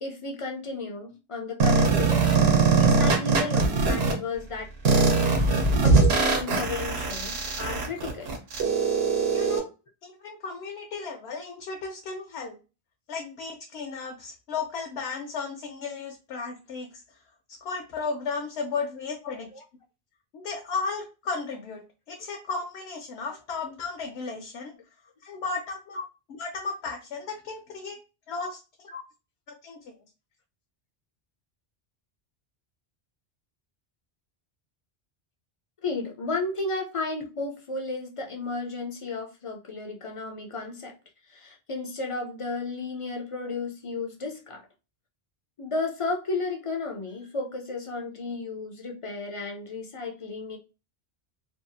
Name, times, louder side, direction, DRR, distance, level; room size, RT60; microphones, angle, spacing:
voice 1, 0.0-5.2 5.8-8.3 19.5-19.6 35.8-40.9 41.3-44.6 45.6-50.6, left 3 dB, 50° left, 2 dB, 0.4 m, -33 dB
sound 1, 1.6-4.1 4.8-9.6, right 4 dB, 75° right, 0.9 m, -22 dB
voice 2, 9.3-9.7 10.0-12.6 13.1-17.2 17.6-19.5 20.3-21.8 22.1-24.7 25.2-26.0 26.4-28.0 28.3-28.6 29.5-29.9, left 4 dB, 80° left, 2 dB, 0.9 m, -34 dB
2.6 x 2.3 x 2.6 m, 0.30 s
omnidirectional pair, 1.1 m